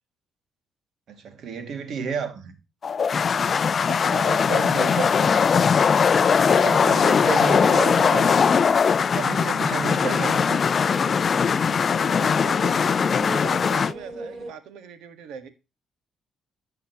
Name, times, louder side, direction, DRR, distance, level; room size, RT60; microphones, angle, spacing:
voice 1, 1.1-2.6 4.5-5.3 6.4-8.8 9.1-10.6, right 6 dB, 70° right, 2.2 m, -31 dB
sound 1, 2.8-13.9, left 6 dB, 45° left, 0.4 m, -20 dB
voice 2, 3.7-5.7 6.4-8.0 11.7-15.5, right 7 dB, 90° right, 1.6 m, -40 dB
sound 2, 9.3-14.5, right 2 dB, 35° right, 5.0 m, -41 dB
15.0 x 5.8 x 3.0 m
cardioid pair, 90°, 0 cm